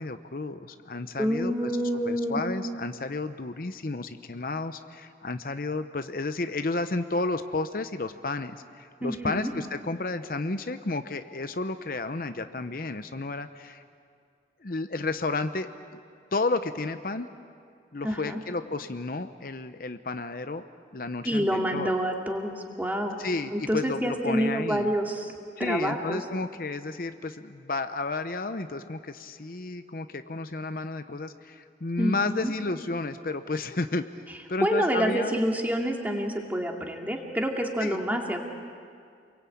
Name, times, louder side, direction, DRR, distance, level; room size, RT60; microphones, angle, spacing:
voice 1, 0.0-1.7 2.1-13.8 14.6-16.0 16.3-17.3 17.9-20.7 20.9-21.9 23.2-24.9 25.6-34.0 34.5-35.4 37.8-38.0, left 3 dB, 55° left, 9 dB, 0.8 m, -32 dB
voice 2, 1.2-2.4 9.0-9.5 18.0-18.4 21.2-23.2 23.5-25.3 25.6-26.2 32.0-32.5 34.6-38.4, equal, 10° right, 1 dB, 2.4 m, -27 dB
28.5 x 22.5 x 8.6 m, 2.3 s
head